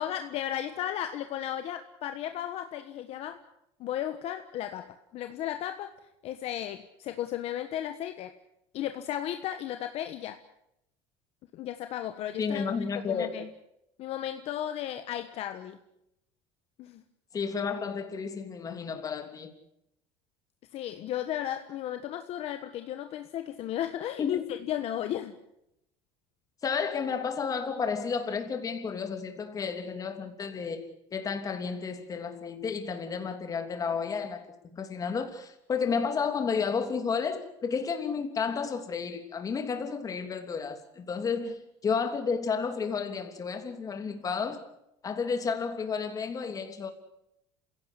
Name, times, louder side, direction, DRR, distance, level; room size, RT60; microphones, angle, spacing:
voice 1, 0.0-3.4 3.8-5.9 6.2-8.3 8.7-10.4 11.5-12.7 13.1-13.5 14.0-15.8 16.8-17.0 20.7-25.4 41.3-41.4, left 11 dB, 50° left, 1.4 m, -34 dB
voice 2, 12.4-13.3 17.3-19.5 24.2-24.4 26.6-34.5 34.7-44.6 45.0-46.9, left 5 dB, 25° left, 3.1 m, -32 dB
28.0 x 17.0 x 8.4 m
cardioid pair, 135°, 13 cm